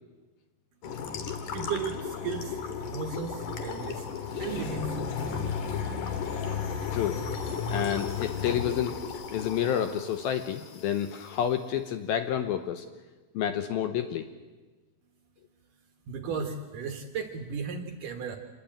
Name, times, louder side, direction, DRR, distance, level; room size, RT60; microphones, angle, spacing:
sound 1, 0.8-11.3, left 6 dB, 55° left, 2.7 m, -34 dB
voice 1, 1.5-4.1 4.3-5.0 16.1-18.4, right 6 dB, 65° right, 5 dB, 2.3 m, -35 dB
sound 2, 1.8-7.9, right 1 dB, 15° left, 2.5 m, -49 dB
voice 2, 6.9-7.2 7.7-9.0 9.3-12.8 13.3-14.3, left 10 dB, 80° left, 8 dB, 2.2 m, -29 dB
27.0 x 20.0 x 8.9 m, 1.3 s
omnidirectional pair, 5.5 m